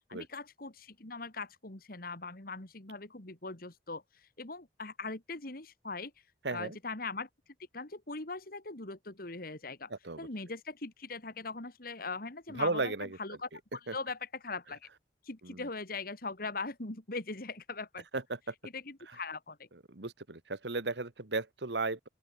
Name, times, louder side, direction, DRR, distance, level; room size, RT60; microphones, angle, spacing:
voice 1, 0.1-6.1 6.5-7.3 7.7-9.9 10.2-14.9 15.2-18.1 18.6-19.7, left 3 dB, 55° left, 2.7 m, -41 dB
voice 2, 6.4-6.8 9.9-10.3 12.5-13.2 13.9-14.0 15.4-15.6 18.1-18.5 19.9-22.1, right 3 dB, 75° right, 1.7 m, -35 dB
open air
head